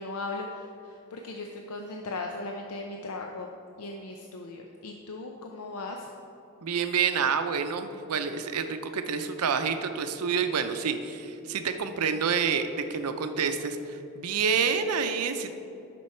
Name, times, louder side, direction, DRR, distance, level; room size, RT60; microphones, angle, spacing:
voice 1, 0.0-3.5 3.8-6.1, left 3 dB, 80° left, 2 dB, 0.6 m, -37 dB
voice 2, 6.6-15.5, right 6 dB, 85° right, 8 dB, 0.6 m, -28 dB
10.5 x 6.1 x 4.3 m, 2.8 s
head